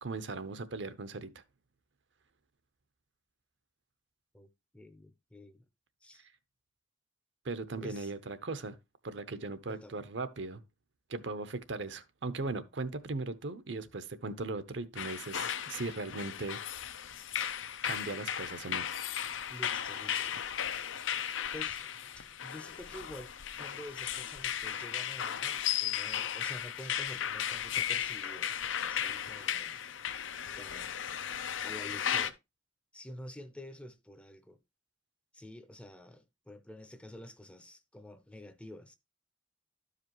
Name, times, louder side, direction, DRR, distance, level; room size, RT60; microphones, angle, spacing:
voice 1, 0.0-1.4 6.2-6.3 7.4-8.8 9.0-10.6 11.1-16.6 17.8-18.9, right 3 dB, 65° right, 0.7 m, -38 dB
voice 2, 4.7-5.6 6.0-6.3 7.8-8.1 9.7-10.0 19.5-20.9 21.5-29.8 30.6-31.3 31.6-32.4 32.9-34.6 35.3-39.0, left 1 dB, 5° left, 0.5 m, -49 dB
sound 1, 15.0-32.3, left 9 dB, 85° left, 0.6 m, -35 dB
12.5 x 5.0 x 3.0 m
head